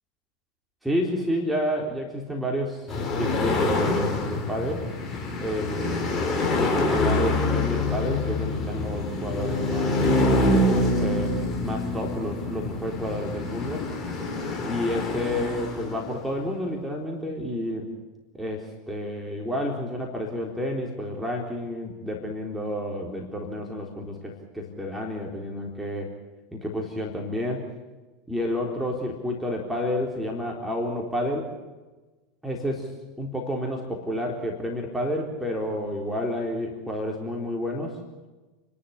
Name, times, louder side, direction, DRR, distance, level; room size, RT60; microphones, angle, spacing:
voice 1, 0.8-4.9 5.4-10.0 11.0-13.9 14.6-17.9 18.3-26.1 26.5-27.7 28.3-31.5 32.4-32.9 33.2-38.0, equal, 5° right, -1 dB, 3.9 m, -30 dB
sound 1, 2.9-16.3, left 2 dB, 20° left, 5.5 m, -26 dB
29.5 x 12.0 x 9.9 m, 1.2 s
figure-of-eight pair, 80°, 0 cm